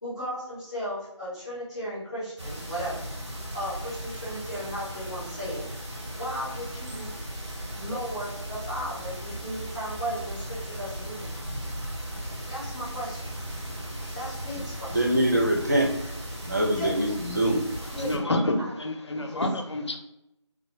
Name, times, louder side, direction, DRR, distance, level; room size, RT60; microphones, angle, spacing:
voice 1, 0.0-3.1 3.5-5.8 6.2-7.1 7.7-11.3 12.5-13.2 14.1-15.0 16.7-16.9 17.9-18.8 19.1-19.4, equal, 10° left, -12 dB, 0.8 m, -35 dB
sound 1, 2.4-18.2, equal, 65° right, 1.4 m, -37 dB
voice 2, 14.9-15.9 16.5-17.6, right 1 dB, 35° right, 0 dB, 0.5 m, -24 dB
voice 3, 17.8-20.0, left 1 dB, 65° left, 3 dB, 0.5 m, -28 dB
2.9 x 2.2 x 2.8 m, 0.85 s
figure-of-eight pair, 170°, 16 cm